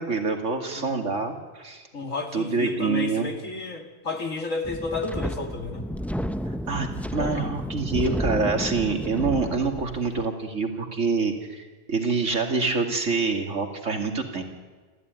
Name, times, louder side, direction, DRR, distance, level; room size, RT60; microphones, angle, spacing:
voice 1, 0.0-1.8 2.3-3.3 6.4-14.4, right 4 dB, 70° right, 3 dB, 2.8 m, -26 dB
voice 2, 1.9-5.9 7.2-7.5, left 3 dB, 85° left, 4 dB, 2.9 m, -32 dB
Wind, 4.6-10.3, equal, ahead, 0.5 m, -31 dB
26.5 x 14.5 x 9.6 m, 1.4 s
omnidirectional pair, 1.3 m